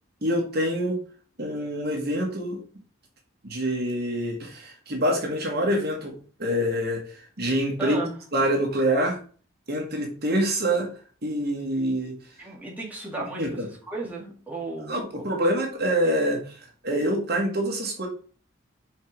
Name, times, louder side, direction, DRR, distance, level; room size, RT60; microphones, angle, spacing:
voice 1, 0.2-1.0 1.4-2.6 3.4-6.1 6.4-8.0 8.3-9.2 9.7-10.9 11.2-12.2 13.4-13.7 14.9-18.1, equal, 50° right, 1 dB, 1.6 m, -26 dB
voice 2, 7.8-8.2 12.4-13.6 13.9-15.3, right 2 dB, 10° right, -4 dB, 2.0 m, -34 dB
5.0 x 4.6 x 4.7 m, 0.40 s
head